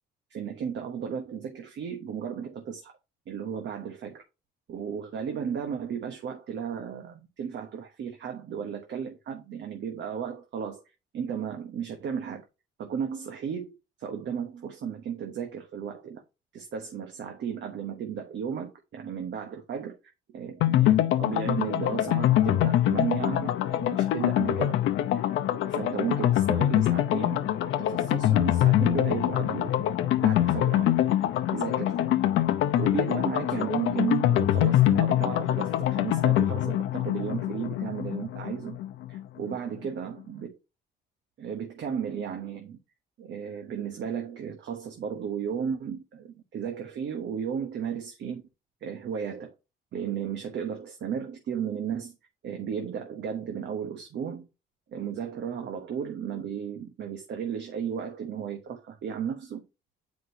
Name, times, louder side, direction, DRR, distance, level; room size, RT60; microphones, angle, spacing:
voice 1, 0.3-2.9 3.3-4.2 4.7-10.8 11.1-12.4 12.8-16.2 16.5-20.0 20.3-24.8 25.1-25.3 25.6-31.1 31.5-32.1 32.7-38.8 39.1-40.6 41.4-42.8 43.2-48.4 48.8-49.5 49.9-52.1 52.4-54.5 54.9-59.6, right 7 dB, 65° right, 1.2 m, -34 dB
sound 1, 20.6-39.2 39.5-39.6 39.8-39.9, left 12 dB, 80° left, 0.7 m, -24 dB
7.8 x 5.1 x 2.7 m
cardioid pair, 90°, 20 cm